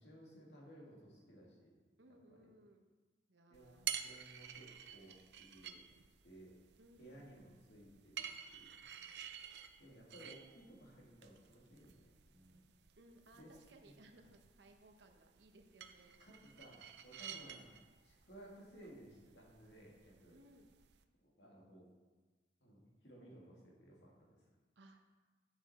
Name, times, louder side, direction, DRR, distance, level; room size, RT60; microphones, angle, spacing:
voice 1, 0.0-1.7 2.1-2.5 3.5-5.8 6.2-6.5 7.0-8.7 9.8-12.6 13.3-13.5 13.8-14.2 16.2-17.7 18.0-20.4 21.2-21.9 22.6-24.4, right 1 dB, 75° left, -3 dB, 2.4 m, -58 dB
voice 2, 2.0-2.9 3.3-3.9 6.8-7.3 9.0-9.3 13.0-16.2 20.3-20.7 24.8-25.0, right 1 dB, 90° right, 5 dB, 1.0 m, -63 dB
sound 1, 3.5-21.0, right 9 dB, 70° right, 0.5 m, -51 dB
9.1 x 7.0 x 4.3 m, 1.3 s
head